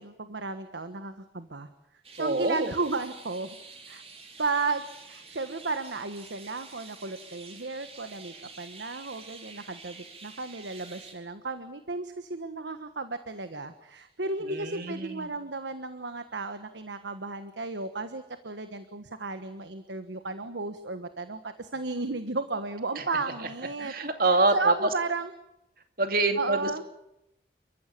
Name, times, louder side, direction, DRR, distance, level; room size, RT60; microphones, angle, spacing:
voice 1, 0.0-1.7 2.1-3.6 3.9-4.0 4.4-23.9 24.2-25.3 26.4-26.8, right 3 dB, 90° right, 10 dB, 1.4 m, -34 dB
sound 1, 2.0-11.1, right 4 dB, 35° right, 4.3 m, -48 dB
voice 2, 2.2-2.7 14.4-15.3 23.0-23.1 23.8-24.7 26.0-26.8, right 2 dB, 55° right, 7 dB, 2.4 m, -26 dB
29.5 x 14.5 x 8.5 m, 0.84 s
head